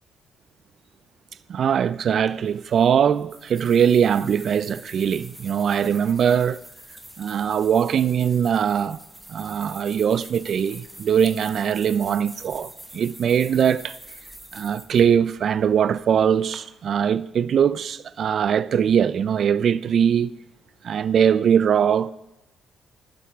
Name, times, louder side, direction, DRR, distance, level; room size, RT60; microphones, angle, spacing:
voice 1, 1.5-6.6 7.2-9.0 9.3-14.0 14.5-20.3 20.8-22.1, right 8 dB, 60° right, 0.3 m, -21 dB
sound 1, 2.3-16.6, right 1 dB, 5° right, 1.0 m, -45 dB
11.5 x 7.3 x 3.6 m
cardioid pair, 90°, 0 cm